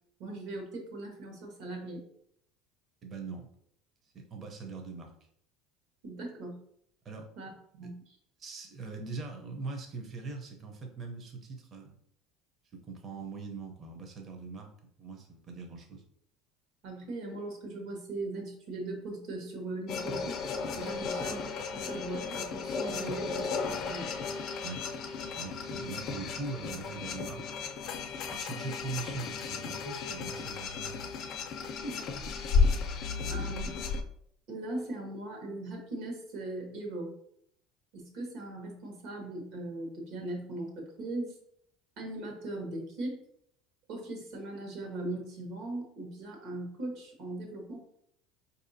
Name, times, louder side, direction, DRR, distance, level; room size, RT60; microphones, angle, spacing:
voice 1, 0.2-2.1 6.0-6.6 7.4-7.9 16.8-20.4 20.8-24.1 31.8-32.0 33.3-33.7 34.5-37.1 37.9-41.4 42.0-43.2 43.9-47.8, right 2 dB, 70° right, 1 dB, 1.2 m, -39 dB
voice 2, 3.0-3.5 4.1-5.1 7.0-7.3 7.8-7.9 8.4-12.0 12.7-14.7 15.0-16.0 24.6-24.9 25.3-27.4 28.3-31.0 32.9-33.3, right 4 dB, 35° right, 3 dB, 0.7 m, -41 dB
sound 1, 19.9-34.0, left 5 dB, 55° left, 0.5 m, -34 dB
4.6 x 2.7 x 2.7 m, 0.70 s
supercardioid pair, 115°, 0 cm